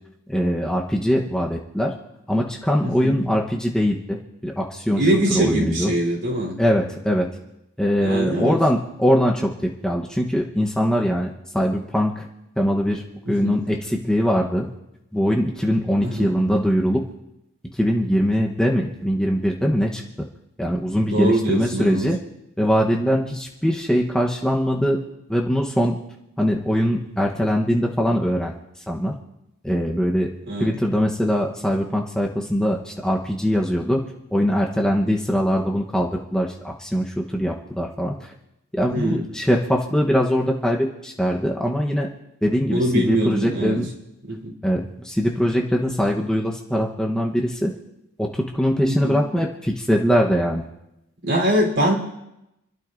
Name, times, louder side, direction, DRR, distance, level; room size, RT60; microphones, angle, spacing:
voice 1, 0.3-1.9 2.3-5.9 6.6-7.3 7.8-12.3 12.6-14.7 15.1-17.0 17.7-20.0 20.6-22.2 22.6-25.0 25.3-26.0 26.4-28.5 28.9-29.1 29.6-30.3 30.6-38.3 38.7-42.1 42.4-43.9 44.6-47.7 48.2-50.6, equal, 5° left, -1 dB, 0.9 m, -22 dB
voice 2, 2.8-3.1 5.0-6.6 8.0-8.6 13.3-13.6 16.0-16.3 21.1-22.1 30.5-30.7 38.9-39.2 42.7-43.8 44.3-44.5 48.8-49.2 51.2-51.9, right 1 dB, 60° right, 0 dB, 3.7 m, -22 dB
29.0 x 12.5 x 2.6 m, 0.88 s
head